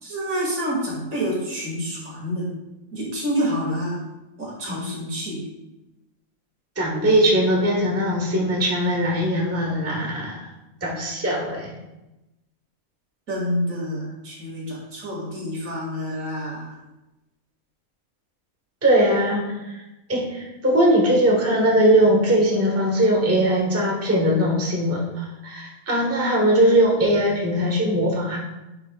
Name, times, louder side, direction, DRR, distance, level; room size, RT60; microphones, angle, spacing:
voice 1, 0.0-2.5 2.9-4.0 4.4-5.5 13.3-16.8, equal, 70° right, -4 dB, 2.5 m, -28 dB
voice 2, 6.8-10.5 10.8-11.7 18.8-19.8 20.1-28.4, right 1 dB, 10° right, -2 dB, 1.0 m, -20 dB
10.5 x 5.3 x 2.3 m, 0.99 s
omnidirectional pair, 1.5 m